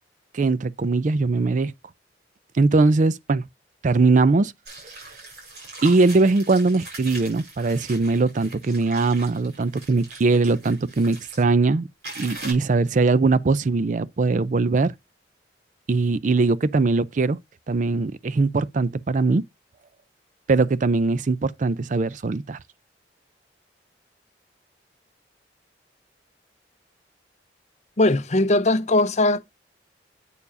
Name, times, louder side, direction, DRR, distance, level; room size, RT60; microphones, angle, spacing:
voice 1, 0.3-1.7 2.5-3.4 3.8-4.5 5.8-11.9 12.2-14.9 15.9-17.4 17.7-19.4 20.5-22.6, right 3 dB, 45° right, 0.4 m, -21 dB
sound 1, 4.6-11.4 12.0-12.5, right 2 dB, 65° right, 6.1 m, -41 dB
voice 2, 28.0-29.4, left 2 dB, 40° left, 0.6 m, -19 dB
8.4 x 6.8 x 2.6 m
head